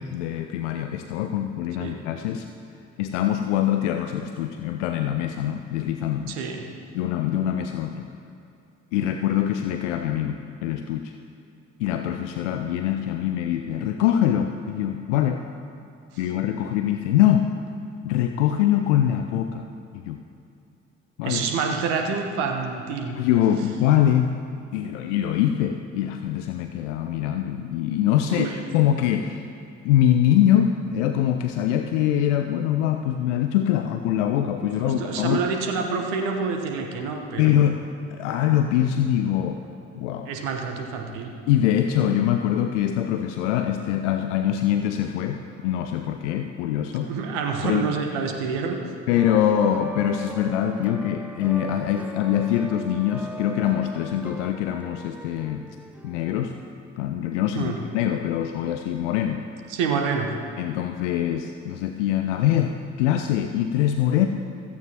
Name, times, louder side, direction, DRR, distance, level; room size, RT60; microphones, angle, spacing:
voice 1, 0.0-2.5 3.0-6.3 6.9-8.1 8.9-11.1 11.8-15.4 16.2-17.5 18.0-19.7 19.9-20.2 21.2-21.4 23.1-24.3 24.7-29.5 29.8-35.4 37.4-39.6 40.0-40.3 41.5-47.1 47.6-47.8 49.1-55.6 56.0-56.6 57.0-59.4 60.6-64.3, left 11 dB, 70° left, 7 dB, 0.6 m, -23 dB
voice 2, 6.3-6.7 21.2-23.2 28.3-28.5 34.8-37.5 40.3-41.3 47.0-48.8 57.6-57.8 59.7-60.3, right 5 dB, 70° right, 3 dB, 1.1 m, -27 dB
sound 1, 49.1-56.7, right 2 dB, 5° right, 0.3 m, -39 dB
15.5 x 14.5 x 2.9 m, 2.7 s
figure-of-eight pair, 45°, 37 cm